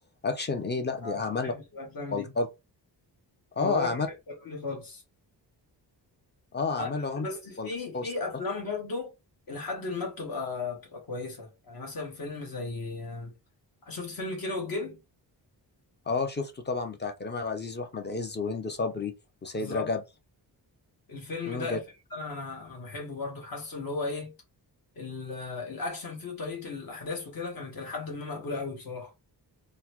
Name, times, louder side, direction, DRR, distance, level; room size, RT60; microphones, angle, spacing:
voice 1, 0.2-1.5 2.1-2.5 3.6-4.1 6.5-7.3 7.6-7.7 7.9-8.1 16.1-19.1 19.4-20.0 21.5-21.8, left 4 dB, 25° left, 0.5 m, -30 dB
voice 2, 1.0-2.3 3.6-5.0 6.8-9.1 9.5-13.3 13.8-15.0 19.6-19.9 21.1-21.8 22.1-24.3 25.0-29.1, left 3 dB, 55° left, 1.3 m, -36 dB
3.8 x 2.1 x 2.9 m
wide cardioid pair, 130°, 42 cm